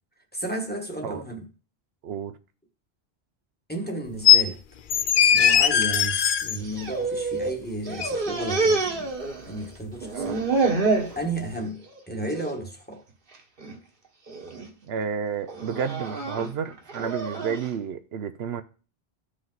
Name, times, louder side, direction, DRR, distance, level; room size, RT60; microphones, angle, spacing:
voice 1, 0.3-1.5 3.7-4.6 5.3-9.1 9.4-10.5 11.1-13.0, right 1 dB, 10° left, 1.4 m, -33 dB
voice 2, 2.0-2.3 10.1-10.4 14.8-18.6, right 7 dB, 75° right, 0.9 m, -31 dB
sound 1, 4.2-4.4 4.9-6.6 8.0-8.1, left 9 dB, 60° left, 0.7 m, -18 dB
sound 2, 6.5-7.6 7.8-9.7 10.0-11.2 11.6-12.0 12.3-12.5 13.3-13.7 14.3-14.7 15.5-17.7, right 3 dB, 55° right, 1.5 m, -27 dB
14.0 x 5.0 x 4.0 m
omnidirectional pair, 1.1 m